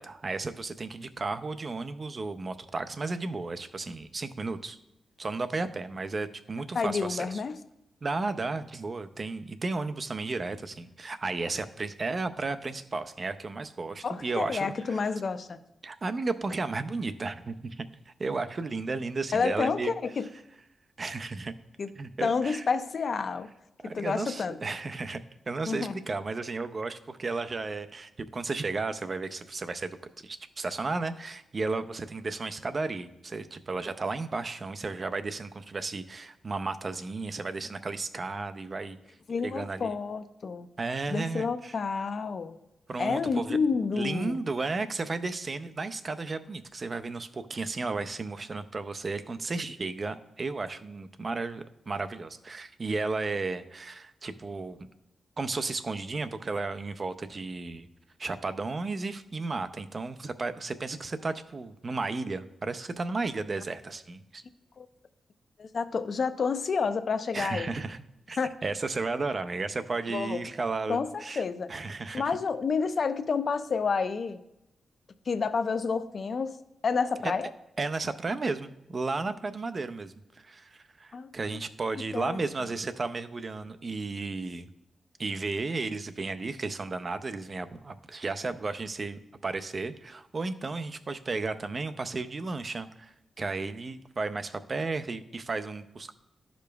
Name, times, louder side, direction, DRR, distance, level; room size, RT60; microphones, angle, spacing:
voice 1, 0.0-4.8 5.2-7.4 8.0-15.0 15.8-19.9 21.0-21.5 22.0-22.6 23.8-25.2 25.5-30.0 30.2-39.0 39.4-39.9 40.8-41.7 42.9-43.6 43.9-54.8 55.4-57.9 58.2-64.4 67.3-71.4 71.7-72.2 77.2-77.5 77.8-84.7 85.2-96.1, right 3 dB, 40° right, 11 dB, 0.5 m, -34 dB
voice 2, 6.7-7.5 14.0-15.6 19.3-20.3 21.8-21.9 22.2-23.5 23.9-24.6 25.7-26.0 39.3-40.7 41.1-42.6 43.0-44.4 64.8-64.9 65.6-67.7 68.4-68.5 70.1-70.5 70.9-71.7 72.1-74.4 75.3-76.6 76.8-77.5 81.1-81.3 82.1-82.4, left 5 dB, 55° left, 11 dB, 0.5 m, -29 dB
11.5 x 5.1 x 2.3 m, 0.90 s
cardioid pair, 100°, 0 cm